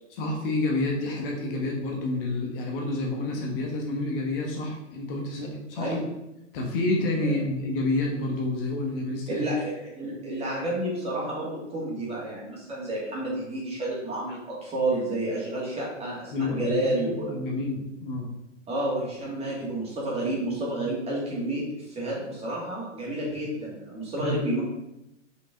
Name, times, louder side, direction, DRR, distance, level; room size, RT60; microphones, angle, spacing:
voice 1, 0.1-6.0 6.5-9.4 16.3-16.9 17.3-18.3 24.2-24.4, left 2 dB, 45° left, 1 dB, 1.4 m, -29 dB
voice 2, 5.8-6.1 7.2-7.3 9.3-17.3 18.7-24.6, right 1 dB, 15° right, -5 dB, 2.3 m, -30 dB
5.2 x 5.2 x 3.8 m, 0.88 s
hypercardioid pair, 125°, 37 cm